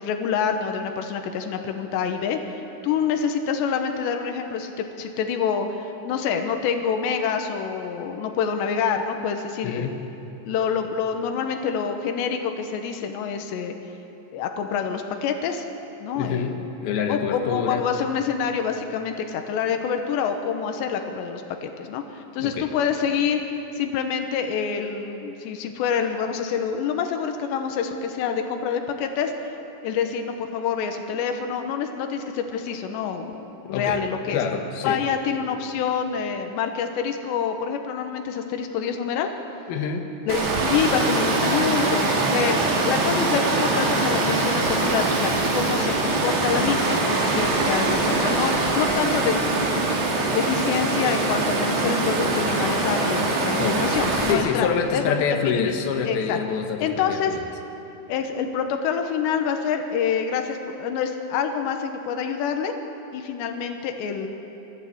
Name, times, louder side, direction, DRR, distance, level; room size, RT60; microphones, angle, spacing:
voice 1, 0.0-10.0 10.5-13.7 14.3-15.7 16.0-16.6 17.1-29.3 29.8-34.4 34.8-39.3 40.3-49.8 50.3-55.1 55.4-55.7 56.1-56.4 56.8-57.4 58.1-62.7 63.1-64.3, left 7 dB, 90° left, 5 dB, 3.4 m, -27 dB
voice 2, 9.6-10.1 16.2-17.8 22.4-22.7 33.7-34.0 34.3-35.0 39.7-40.1 53.6-53.9 54.3-57.4, left 6 dB, 65° left, 3 dB, 3.1 m, -26 dB
Water, 40.3-54.3, right 2 dB, 70° right, 4.5 m, -23 dB
24.5 x 14.0 x 8.8 m, 3.0 s
omnidirectional pair, 4.9 m